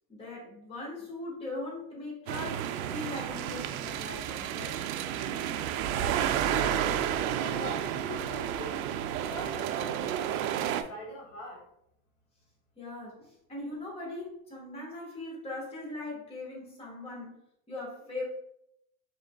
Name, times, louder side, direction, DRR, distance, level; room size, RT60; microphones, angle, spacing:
voice 1, 0.1-4.7 12.8-17.3 17.7-18.2, left 2 dB, 15° left, -4 dB, 1.4 m, -40 dB
sound 1, 2.3-10.8, right 10 dB, 85° right, 0.5 m, -31 dB
voice 2, 6.3-6.8 7.3-8.9 9.2-11.7, left 2 dB, 50° left, -1 dB, 1.1 m, -43 dB
4.9 x 3.7 x 2.2 m, 0.76 s
supercardioid pair, 130°, 42 cm